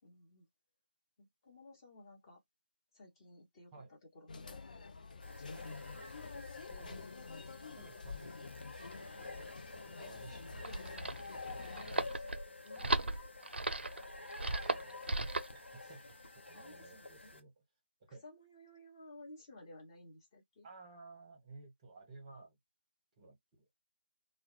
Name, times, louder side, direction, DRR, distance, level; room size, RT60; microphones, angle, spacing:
voice 1, 0.0-0.5 1.2-2.4 2.9-3.7 4.1-5.8 11.7-13.1 16.5-17.3 18.2-20.7, left 1 dB, 25° left, 0.9 m, -57 dB
sound 1, 4.3-12.1, left 4 dB, 45° left, 0.3 m, -48 dB
sound 2, 5.2-17.4, left 3 dB, 80° left, 0.7 m, -50 dB
voice 2, 6.2-8.5 8.9-9.5 9.7-11.1 11.5-11.7 12.7-13.3 14.4-14.9 15.5-17.6 18.0-18.2 20.6-22.6 23.2-23.7, right 3 dB, 20° right, 0.8 m, -57 dB
sound 3, 10.5-15.6, right 2 dB, 70° right, 0.4 m, -37 dB
2.2 x 2.0 x 2.9 m
figure-of-eight pair, 155°, 6 cm